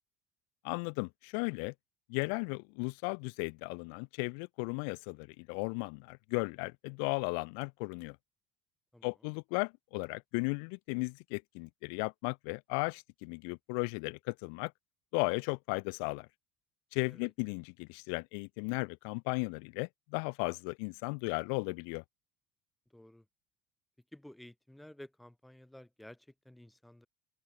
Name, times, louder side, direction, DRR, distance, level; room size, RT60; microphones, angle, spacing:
voice 1, 0.6-1.7 2.1-8.2 9.0-14.7 15.1-16.3 16.9-22.0, left 40 dB or more, 80° left, 2.4 m, -35 dB
voice 2, 8.9-9.3 17.1-17.3 22.9-23.3 24.1-27.1, left 1 dB, 5° left, 7.6 m, -53 dB
open air
cardioid pair, 160°, 0 cm